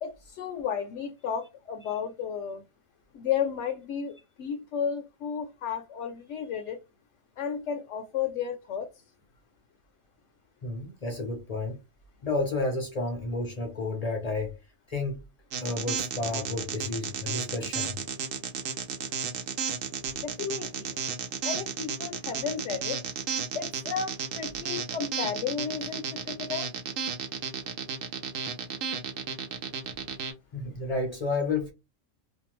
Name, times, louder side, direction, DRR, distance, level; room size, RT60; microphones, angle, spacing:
voice 1, 0.0-2.6 3.1-6.8 7.4-8.9 20.2-21.0 21.4-23.0 23.5-26.7, left 7 dB, 70° left, 0.8 m, -33 dB
voice 2, 10.6-11.8 12.2-14.6 14.9-15.2 15.6-18.0 30.5-31.7, left 3 dB, 45° left, 0.5 m, -31 dB
sound 1, 15.5-30.3, right 7 dB, 80° right, 1.0 m, -33 dB
2.6 x 2.3 x 2.9 m
omnidirectional pair, 1.4 m